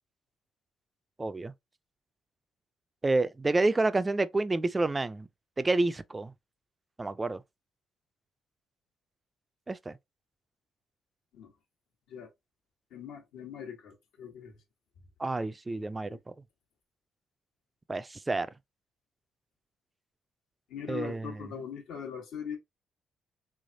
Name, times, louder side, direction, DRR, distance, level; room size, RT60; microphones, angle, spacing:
voice 1, 1.2-1.5 3.0-5.3 5.6-6.3 7.0-7.4 9.7-10.0 15.2-16.3 17.9-18.5 20.9-21.5, right 2 dB, 20° right, 0.3 m, -29 dB
voice 2, 12.9-14.6 20.7-22.6, left 7 dB, 85° left, 1.2 m, -41 dB
3.4 x 3.3 x 2.6 m
cardioid pair, 90°, 0 cm